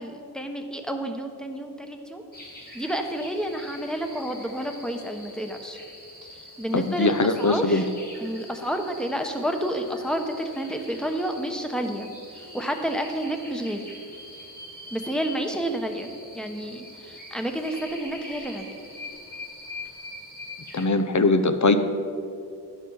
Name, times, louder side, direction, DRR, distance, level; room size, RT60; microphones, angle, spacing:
voice 1, 0.0-2.2 2.7-5.8 6.3-7.9 8.2-13.9 14.9-18.8, right 1 dB, ahead, 4 dB, 1.0 m, -30 dB
sound 1, 2.3-20.9, left 1 dB, 25° left, 2.2 m, -44 dB
voice 2, 6.7-7.9 20.7-21.8, left 3 dB, 50° left, 9 dB, 0.7 m, -21 dB
11.5 x 6.1 x 5.6 m, 2.4 s
wide cardioid pair, 60°, 39 cm